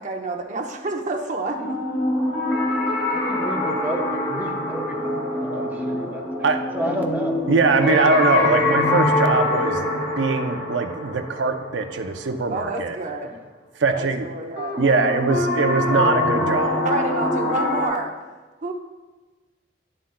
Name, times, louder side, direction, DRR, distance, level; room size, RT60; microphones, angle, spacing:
voice 1, 0.0-1.8 12.5-13.4 14.0-14.7 16.8-18.1 18.6-18.7, right 2 dB, 40° right, 2 dB, 0.7 m, -28 dB
sound 1, 1.6-12.5 14.6-17.9, left 2 dB, 85° left, 1.8 m, -24 dB
voice 2, 3.1-5.0 5.3-6.3 6.7-7.4, right 1 dB, 10° right, 0 dB, 0.8 m, -31 dB
voice 3, 7.5-13.0 13.8-16.8, right 4 dB, 75° right, 7 dB, 0.5 m, -22 dB
9.7 x 7.5 x 2.2 m, 1.3 s
head